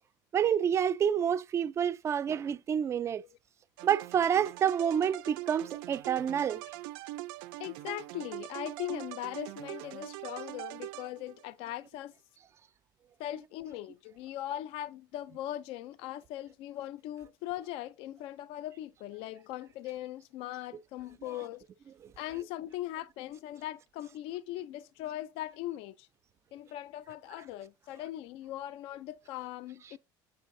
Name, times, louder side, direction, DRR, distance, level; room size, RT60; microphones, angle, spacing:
voice 1, 0.3-3.2 3.8-6.6, right 8 dB, 25° right, 0.4 m, -28 dB
sound 1, 3.8-11.5, right 17 dB, 85° right, 0.5 m, -43 dB
voice 2, 7.6-12.1 13.2-21.7 22.2-26.1 26.5-30.0, left 13 dB, 60° left, 0.4 m, -40 dB
7.5 x 5.2 x 2.6 m
cardioid pair, 140°, 11 cm